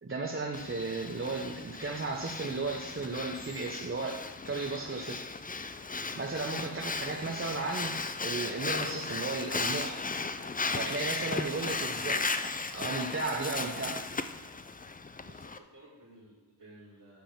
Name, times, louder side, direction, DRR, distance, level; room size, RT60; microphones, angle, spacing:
voice 1, 0.0-5.2 6.1-7.9 8.2-10.0 10.7-12.2 12.7-14.0, right 3 dB, 30° right, 1 dB, 0.8 m, -35 dB
Breathing, 0.5-15.6, left 4 dB, 20° left, 0.4 m, -36 dB
voice 2, 11.5-12.0 13.4-14.0 15.2-17.2, right 1 dB, 70° right, -10 dB, 2.8 m, -55 dB
10.0 x 3.7 x 5.7 m, 1.2 s
wide cardioid pair, 45°, 40 cm